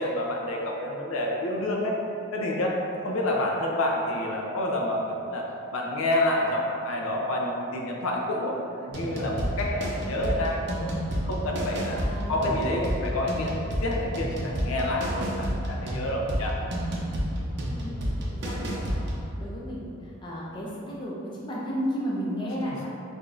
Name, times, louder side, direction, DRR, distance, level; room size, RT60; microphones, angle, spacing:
voice 1, 0.0-1.9 2.3-2.8 3.0-5.4 5.7-10.9 11.2-12.0 12.3-16.6, left 1 dB, 80° left, -1 dB, 0.5 m, -28 dB
sound 1, 8.9-19.3, equal, 55° right, 0.6 m, -30 dB
voice 2, 11.9-12.6 17.7-19.1 19.4-22.9, equal, 20° left, -5 dB, 0.4 m, -34 dB
4.8 x 2.6 x 2.4 m, 2.6 s
head